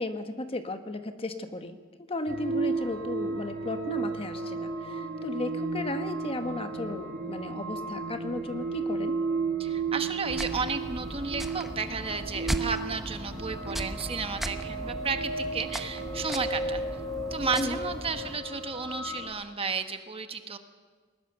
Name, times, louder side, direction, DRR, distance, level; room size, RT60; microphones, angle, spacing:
voice 1, 0.0-1.8 2.1-9.2 17.6-17.8, left 2 dB, 25° left, 8 dB, 1.1 m, -35 dB
sound 1, 2.3-19.3, right 3 dB, 60° right, 4.0 m, -34 dB
voice 2, 9.6-17.0 17.3-20.6, right 4 dB, 30° right, 7 dB, 1.2 m, -33 dB
sound 2, 10.3-18.4, equal, ahead, 0.8 m, -37 dB
20.5 x 20.0 x 6.8 m, 1.5 s
head